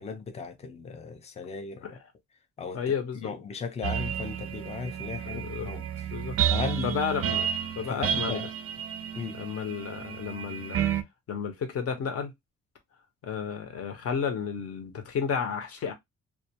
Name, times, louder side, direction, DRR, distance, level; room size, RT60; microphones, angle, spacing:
voice 1, 0.0-2.0 2.6-5.9 6.5-7.0 7.9-8.5 9.1-9.4, left 5 dB, 20° left, 0.4 m, -36 dB
voice 2, 2.7-3.3 5.0-5.7 6.1-6.4 6.8-7.5 7.8-8.4 9.3-10.8 11.3-12.3 13.2-15.9, left 6 dB, 55° left, 0.7 m, -32 dB
sound 1, 3.8-11.0, right 9 dB, 50° right, 0.4 m, -31 dB
2.3 x 2.2 x 2.7 m
cardioid pair, 150°, 29 cm